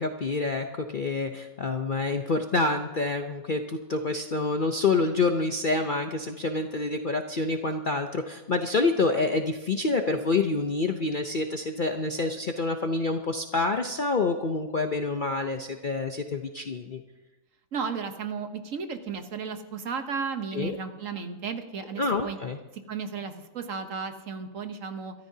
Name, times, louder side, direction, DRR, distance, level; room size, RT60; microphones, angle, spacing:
voice 1, 0.0-17.0 20.5-20.8 22.0-22.6, left 3 dB, 50° left, 5 dB, 0.6 m, -27 dB
voice 2, 17.7-22.4 22.9-25.1, right 5 dB, 60° right, 7 dB, 1.3 m, -34 dB
23.5 x 14.0 x 2.8 m, 1.1 s
omnidirectional pair, 1.7 m